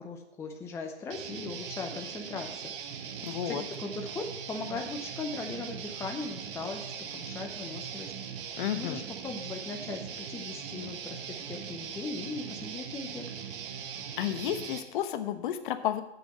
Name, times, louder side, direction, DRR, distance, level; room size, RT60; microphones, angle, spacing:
voice 1, 0.0-2.7 3.4-8.1 8.7-13.2, left 4 dB, 10° left, 3 dB, 0.6 m, -39 dB
Guitar, 1.1-14.8, right 7 dB, 50° right, 1.4 m, -40 dB
voice 2, 3.2-3.6 8.6-9.0 14.2-16.0, left 11 dB, 50° left, 10 dB, 1.0 m, -31 dB
7.5 x 6.9 x 7.8 m, 0.86 s
hypercardioid pair, 130°, 33 cm